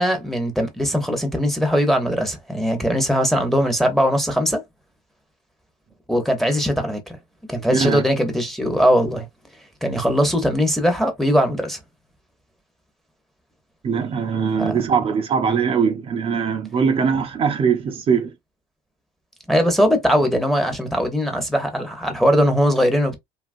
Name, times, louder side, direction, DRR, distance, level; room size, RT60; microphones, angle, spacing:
voice 1, 0.0-4.6 6.1-7.2 7.5-9.3 9.8-11.8 14.6-14.8 19.5-23.2, equal, ahead, 0.8 m, -20 dB
voice 2, 7.7-8.0 13.8-18.3, right 6 dB, 40° right, 0.5 m, -21 dB
2.8 x 2.4 x 2.5 m
supercardioid pair, 105°, 15 cm